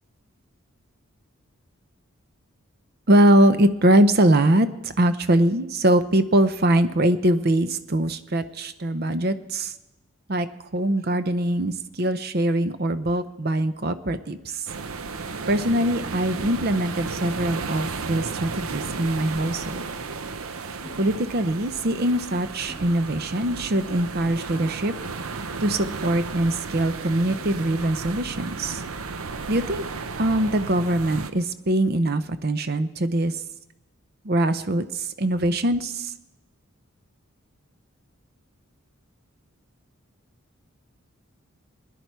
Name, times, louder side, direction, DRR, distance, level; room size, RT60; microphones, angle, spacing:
voice 1, 3.1-9.7 10.3-10.5 10.7-14.7 15.5-19.8 21.0-24.9 25.6-28.8 29.5-29.8 30.2-33.4 34.2-36.1, right 1 dB, 45° right, 12 dB, 0.7 m, -22 dB
sound 1, 14.7-31.3, right 4 dB, 85° right, 0.7 m, -34 dB
sound 2, 20.8-21.3 21.7-21.9 22.7-23.1 23.8-24.1 24.9-25.8 27.2-27.8, left 1 dB, 10° right, 0.9 m, -48 dB
21.5 x 10.0 x 4.6 m, 1.0 s
head